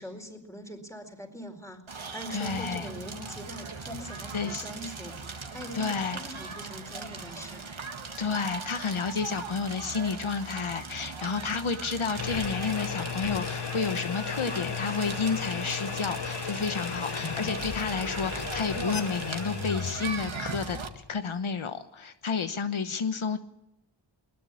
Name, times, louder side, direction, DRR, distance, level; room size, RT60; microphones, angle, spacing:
voice 1, 0.0-5.2 5.5-7.6, equal, 5° left, 5 dB, 4.6 m, -43 dB
Crackle, 1.9-20.9, right 4 dB, 75° right, 1.9 m, -39 dB
voice 2, 2.3-2.9 4.3-4.7 5.7-6.2 8.2-23.4, left 5 dB, 90° left, 9 dB, 1.2 m, -31 dB
sound 1, 12.2-21.3, left 6 dB, 60° left, 1.2 m, -35 dB
21.0 x 20.5 x 8.6 m, 0.86 s
wide cardioid pair, 75°, 47 cm